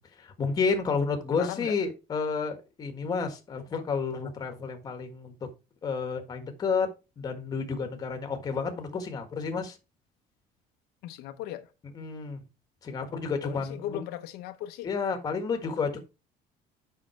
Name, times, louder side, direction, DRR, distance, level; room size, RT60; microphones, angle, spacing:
voice 1, 0.2-5.5 5.8-6.9 7.2-9.8 11.9-12.4 12.8-14.0 14.8-16.0, left 5 dB, 25° left, 1.5 m, -31 dB
voice 2, 1.4-1.7 11.0-11.7 13.4-14.9, left 13 dB, 85° left, 0.9 m, -37 dB
7.6 x 5.8 x 4.4 m
cardioid pair, 175°, 16 cm